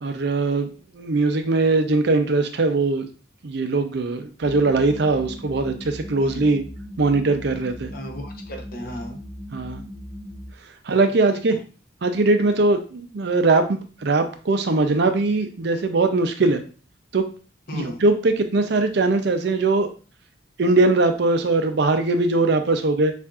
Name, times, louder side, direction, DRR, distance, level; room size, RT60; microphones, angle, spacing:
voice 1, 0.0-3.1 3.4-6.6 7.0-7.9 9.5-9.8 10.8-11.6 12.0-16.6 17.1-17.3 17.7-19.9 20.6-23.1, right 3 dB, 55° right, 7 dB, 0.5 m, -21 dB
sound 1, 4.4-10.5, equal, 20° left, 0.5 m, -38 dB
voice 2, 6.2-6.6 7.9-9.2 11.5-11.6 17.7-18.0, left 1 dB, 45° left, 2 dB, 0.8 m, -35 dB
6.9 x 2.5 x 2.4 m, 0.37 s
head